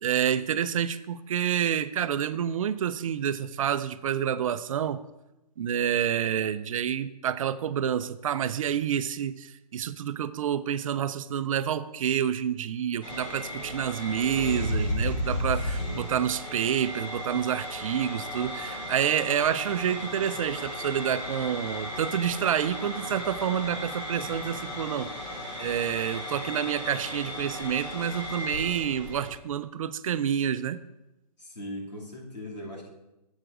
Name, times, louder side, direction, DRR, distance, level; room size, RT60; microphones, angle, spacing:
voice 1, 0.0-5.0 5.6-25.1 25.6-30.8, right 9 dB, 55° right, 14 dB, 0.4 m, -28 dB
sound 1, 13.0-29.3, left 1 dB, 50° left, 3.3 m, -35 dB
voice 2, 15.8-16.2 31.4-32.9, left 1 dB, 85° left, -3 dB, 2.5 m, -40 dB
12.0 x 8.1 x 2.5 m, 0.97 s
hypercardioid pair, 140°, 21 cm